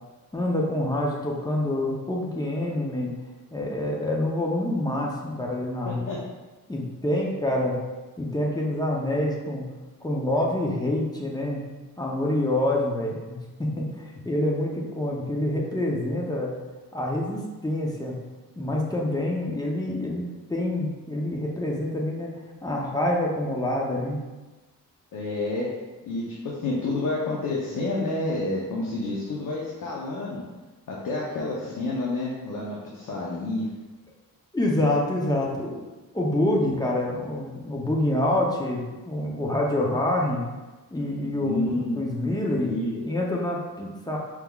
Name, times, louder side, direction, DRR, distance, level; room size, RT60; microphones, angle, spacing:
voice 1, 0.3-3.1 3.5-6.0 6.7-7.8 8.2-9.7 10.0-11.6 12.0-16.5 16.9-18.2 18.6-22.3 22.6-24.2 34.5-35.8 36.1-40.4 40.9-42.8 43.1-44.2, left 1 dB, 10° left, -2 dB, 0.6 m, -26 dB
voice 2, 5.9-6.2 25.1-25.7 26.0-30.4 30.9-33.7 41.4-42.0 42.5-43.0, left 2 dB, 65° left, -4 dB, 0.7 m, -29 dB
4.6 x 3.7 x 2.3 m, 1.2 s
wide cardioid pair, 135°, 34 cm